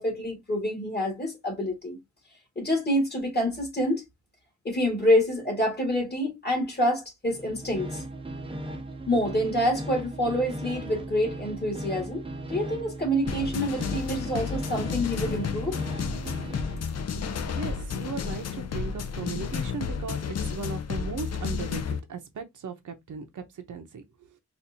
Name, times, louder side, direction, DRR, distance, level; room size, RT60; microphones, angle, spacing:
voice 1, 0.0-2.0 2.6-4.0 4.6-8.0 9.1-15.8, equal, 35° left, 1.8 m, -27 dB
sound 1, 7.3-16.8, right 1 dB, 20° right, 0.5 m, -37 dB
sound 2, 13.3-22.0, left 6 dB, 60° left, 0.5 m, -32 dB
voice 2, 17.1-24.0, right 5 dB, 85° right, 0.8 m, -37 dB
4.2 x 2.5 x 2.6 m
wide cardioid pair, 160°, 30 cm